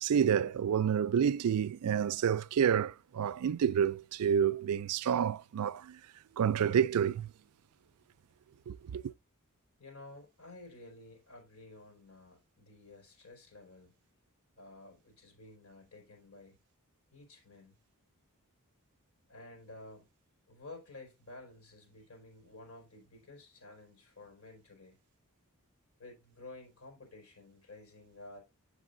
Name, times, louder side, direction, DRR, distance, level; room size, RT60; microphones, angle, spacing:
voice 1, 0.0-6.0 6.4-7.3 8.7-9.0, right 8 dB, 80° right, 0.4 m, -29 dB
voice 2, 9.8-13.9 14.6-16.6 17.1-17.8 19.3-20.1 20.5-25.0 26.0-28.4, left 2 dB, 85° left, 4.6 m, -52 dB
8.1 x 8.1 x 2.6 m
head